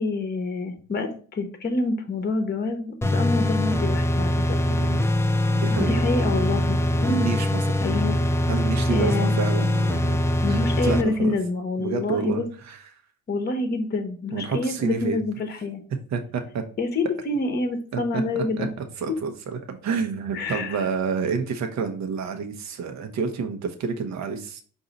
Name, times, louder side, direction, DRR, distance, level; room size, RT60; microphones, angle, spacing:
voice 1, 0.0-4.3 5.7-7.3 7.8-8.2 8.9-9.3 10.4-12.4 13.3-15.8 16.8-18.7 19.1-19.2 20.3-20.8, left 3 dB, 35° left, 7 dB, 0.8 m, -27 dB
sound 1, 3.0-11.0, left 1 dB, 10° left, 0.3 m, -23 dB
voice 2, 4.7-5.1 5.5-6.0 7.1-7.6 8.5-10.2 10.5-11.4 11.8-12.8 14.3-15.2 16.1-16.6 17.9-18.2 18.6-18.7 19.0-24.6, right 5 dB, 65° right, 6 dB, 0.8 m, -29 dB
4.7 x 2.7 x 3.9 m, 0.43 s
cardioid pair, 90°, 30 cm